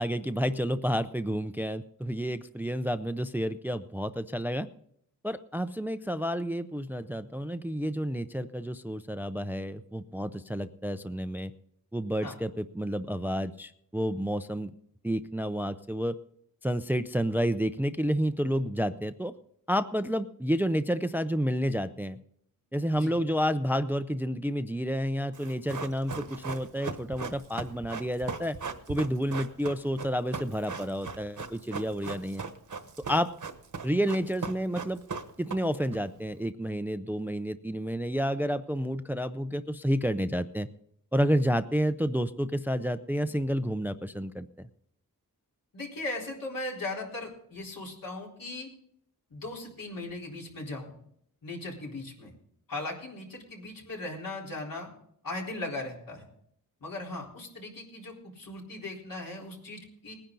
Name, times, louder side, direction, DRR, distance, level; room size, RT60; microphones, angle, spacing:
voice 1, 0.0-4.7 5.2-11.5 11.9-14.7 15.0-16.1 16.6-19.3 19.7-22.2 22.7-28.6 28.9-32.4 33.1-33.3 33.8-35.0 35.4-40.7 41.1-44.5, equal, 5° right, 11 dB, 0.5 m, -30 dB
Run, 25.3-36.0 36.2-36.3, right 5 dB, 60° right, 1.2 m, -38 dB
voice 2, 45.7-48.7 49.3-50.9 51.4-52.3 52.7-54.9 55.2-56.3 56.8-60.1, left 2 dB, 70° left, -2 dB, 4.1 m, -38 dB
20.0 x 10.0 x 3.9 m, 0.69 s
wide cardioid pair, 120°, 34 cm